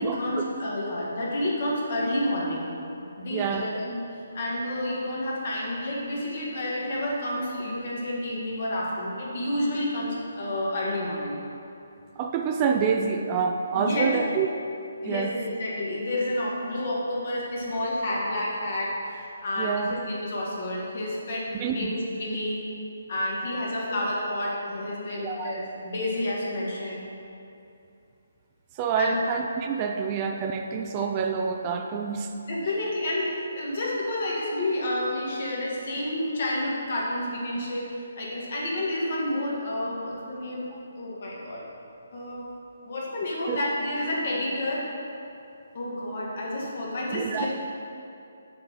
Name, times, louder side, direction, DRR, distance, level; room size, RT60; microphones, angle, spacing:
voice 1, 0.0-2.7 3.2-11.4 13.7-14.1 15.0-15.3 15.6-22.6 23.1-27.0 29.0-29.2 32.5-37.8 38.2-40.7 41.0-41.6 42.1-42.5 42.8-44.8 45.7-47.5, left 1 dB, 50° left, -4 dB, 1.7 m, -30 dB
voice 2, 3.3-3.7 12.2-14.5 15.0-15.3 19.6-20.0 21.5-21.9 25.2-25.5 28.7-32.3 37.5-37.6 40.7-40.8 43.5-43.6 47.1-47.5, right 6 dB, 25° right, 4 dB, 0.3 m, -27 dB
6.5 x 4.5 x 5.4 m, 2.7 s
figure-of-eight pair, 140°, 0 cm